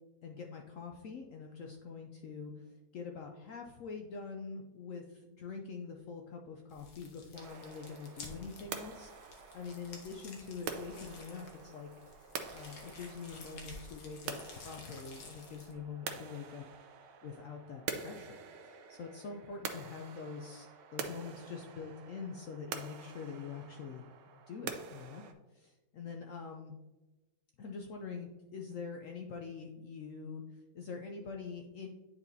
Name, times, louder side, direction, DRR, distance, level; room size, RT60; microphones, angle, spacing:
voice 1, 0.2-11.9 12.2-16.6 17.2-24.1 24.5-25.2 25.5-26.8 27.6-31.9, left 5 dB, 70° left, 2 dB, 0.7 m, -45 dB
sound 1, 6.7-15.7, left 3 dB, 85° left, 1.7 m, -53 dB
sound 2, 7.3-25.3, right 6 dB, 85° right, 1.3 m, -46 dB
9.6 x 4.3 x 2.7 m, 1.1 s
omnidirectional pair, 1.9 m